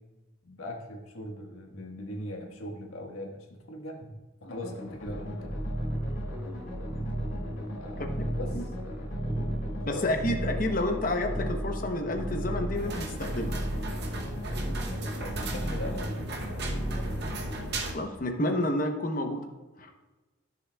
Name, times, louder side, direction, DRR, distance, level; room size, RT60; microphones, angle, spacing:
voice 1, 0.4-4.1 4.4-5.5 7.8-8.7 9.9-10.1 15.1-16.1, left 1 dB, 90° left, 1 dB, 1.5 m, -40 dB
sound 1, 4.4-17.9, left 2 dB, 65° left, 2.1 m, -42 dB
sound 2, 5.1-17.7, right 1 dB, 10° right, 0.5 m, -34 dB
voice 2, 9.8-13.6 17.9-19.5 19.8-19.9, left 1 dB, 40° left, 4 dB, 0.9 m, -30 dB
sound 3, 12.7-17.9, right 2 dB, 50° right, 0.9 m, -37 dB
13.0 x 6.7 x 2.3 m, 1.2 s
head